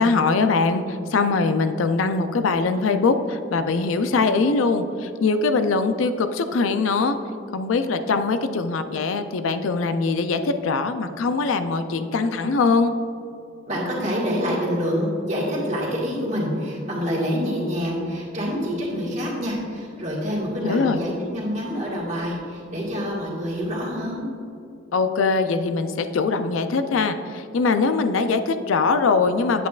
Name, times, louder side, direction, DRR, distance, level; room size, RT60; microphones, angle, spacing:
voice 1, 0.0-7.2 7.5-12.9 20.6-21.0 24.9-29.7, left 4 dB, 85° left, 9 dB, 0.4 m, -22 dB
voice 2, 13.7-24.2, equal, 35° right, -4 dB, 1.6 m, -26 dB
8.3 x 8.2 x 2.4 m, 2.7 s
head